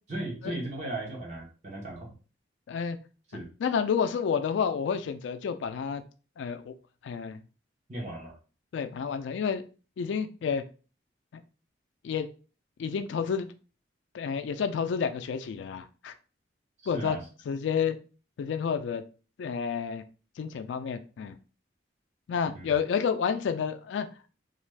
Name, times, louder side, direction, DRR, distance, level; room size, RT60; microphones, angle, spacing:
voice 1, 0.1-2.1 3.3-3.5 7.9-8.3 16.9-17.2 22.5-22.7, right 2 dB, 40° right, -2 dB, 0.9 m, -36 dB
voice 2, 2.7-3.0 3.6-6.0 6.4-6.7 7.0-7.4 8.7-9.6 10.0-10.6 11.3-11.4 12.0-12.3 12.8-13.5 14.1-16.1 16.9-17.2 17.5-18.0 18.4-19.0 19.4-20.0 20.4-21.4 22.3-24.1, left 6 dB, 80° left, 9 dB, 0.3 m, -30 dB
2.5 x 2.3 x 3.2 m, 0.36 s
head